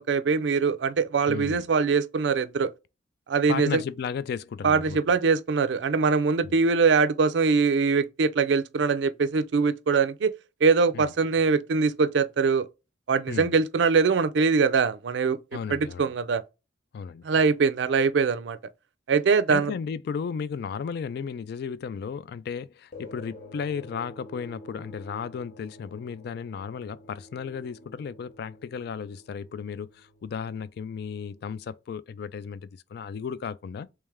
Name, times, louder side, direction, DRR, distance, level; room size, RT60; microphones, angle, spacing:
voice 1, 0.0-2.7 3.3-3.8 4.6-10.3 10.6-12.7 13.1-15.4 15.7-16.4 17.2-18.6 19.1-19.7, right 5 dB, 70° right, 0.4 m, -23 dB
voice 2, 1.3-1.7 3.5-5.2 6.4-6.6 10.9-11.1 13.3-13.5 15.5-16.1 16.9-17.2 19.5-33.9, left 6 dB, 60° left, 0.3 m, -34 dB
sound 1, 22.9-31.7, left 1 dB, 45° left, 1.1 m, -49 dB
3.3 x 3.1 x 3.5 m
head